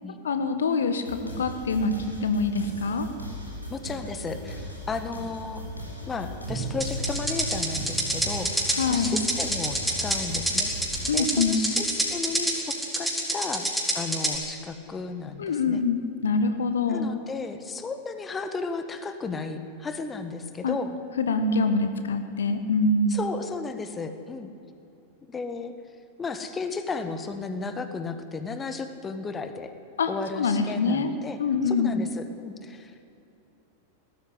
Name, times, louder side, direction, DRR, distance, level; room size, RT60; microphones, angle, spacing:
voice 1, 0.2-1.9 2.2-3.1 8.8-9.2 11.1-11.6 15.4-17.2 20.6-20.8 21.2-23.2 30.0-30.1 30.4-31.1 31.4-32.0, left 4 dB, 65° left, 8 dB, 1.4 m, -25 dB
sound 1, 1.0-11.1, equal, 90° left, 4.4 m, -38 dB
voice 2, 3.7-5.6 6.0-8.5 8.9-10.7 11.1-13.7 13.9-15.8 16.9-20.9 23.1-24.5 25.3-25.7 26.2-29.7 30.1-31.4 31.6-33.0, left 4 dB, 20° left, 9 dB, 1.6 m, -34 dB
Bowed string instrument, 6.5-9.3, right 3 dB, 45° right, 3.9 m, -37 dB
sound 2, 6.8-14.4, right 1 dB, ahead, 4.9 m, -27 dB
19.0 x 14.0 x 10.0 m, 2.9 s
figure-of-eight pair, 90°, 0 cm